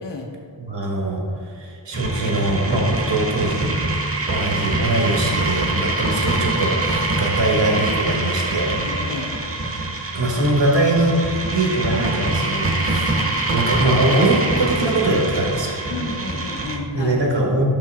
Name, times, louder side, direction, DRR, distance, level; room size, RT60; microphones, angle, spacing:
voice 1, 0.0-0.3 8.8-9.4 15.9-17.2, left 3 dB, 65° left, 0 dB, 0.9 m, -31 dB
voice 2, 0.7-3.7 4.3-8.8 10.1-13.1 13.5-16.0 16.9-17.6, right 2 dB, 70° right, -1 dB, 1.3 m, -22 dB
sound 1, 1.9-16.8, right 2 dB, 30° right, 0.8 m, -24 dB
5.8 x 5.5 x 3.6 m, 2.4 s
wide cardioid pair, 85°, 45 cm